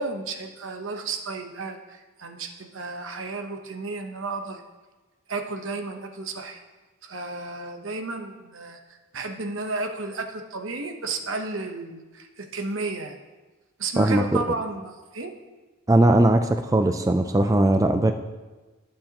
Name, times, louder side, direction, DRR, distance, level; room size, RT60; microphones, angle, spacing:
voice 1, 0.0-4.6 5.3-6.6 7.0-8.8 9.1-13.2 13.8-15.3, right 3 dB, 75° right, 5 dB, 0.9 m, -33 dB
voice 2, 14.0-14.4 15.9-18.1, right 1 dB, 15° right, 7 dB, 0.3 m, -19 dB
17.5 x 6.5 x 2.9 m, 1.2 s
head